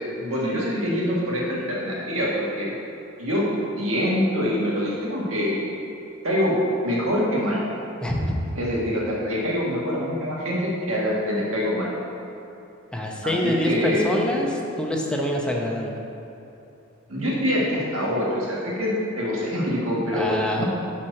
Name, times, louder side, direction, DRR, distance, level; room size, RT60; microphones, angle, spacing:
voice 1, 0.2-2.8 3.2-3.5 3.8-5.6 6.2-6.6 6.8-7.6 8.6-11.9 13.2-14.1 17.1-20.7, equal, 80° right, -5 dB, 1.5 m, -25 dB
voice 2, 8.0-8.4 12.9-16.0 20.1-20.7, left 1 dB, 5° left, -1 dB, 0.7 m, -25 dB
6.1 x 4.3 x 6.4 m, 2.9 s
head